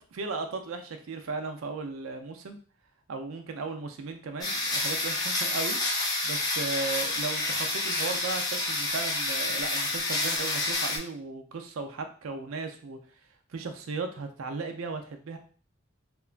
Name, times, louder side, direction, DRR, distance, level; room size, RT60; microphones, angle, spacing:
voice 1, 0.1-2.6 3.1-5.8 6.2-13.0 13.5-15.4, right 4 dB, 85° right, 6 dB, 0.4 m, -36 dB
sound 1, 4.4-11.0, left 2 dB, 20° left, 0.5 m, -29 dB
2.8 x 2.2 x 2.4 m, 0.41 s
head